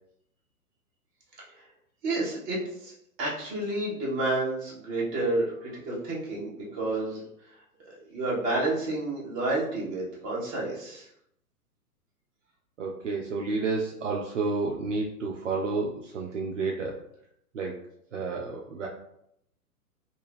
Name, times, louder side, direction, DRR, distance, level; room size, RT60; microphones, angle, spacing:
voice 1, 2.0-2.9 3.2-7.5 8.1-11.1, right 2 dB, 20° right, -5 dB, 0.9 m, -30 dB
voice 2, 12.8-17.0 17.5-17.8 18.1-18.9, right 3 dB, 55° right, -1 dB, 0.5 m, -30 dB
3.3 x 2.5 x 3.4 m, 0.75 s
figure-of-eight pair, 115°, 46 cm